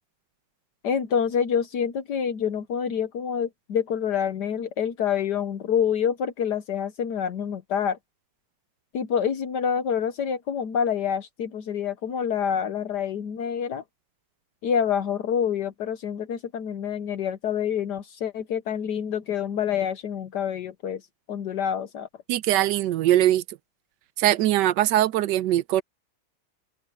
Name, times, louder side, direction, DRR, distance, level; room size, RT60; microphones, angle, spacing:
voice 1, 0.8-8.0 8.9-13.8 14.6-21.0 21.3-22.1, left 8 dB, 70° left, 1.5 m, -27 dB
voice 2, 22.3-23.4 24.2-25.8, right 13 dB, 80° right, 1.2 m, -21 dB
omnidirectional pair, 1.9 m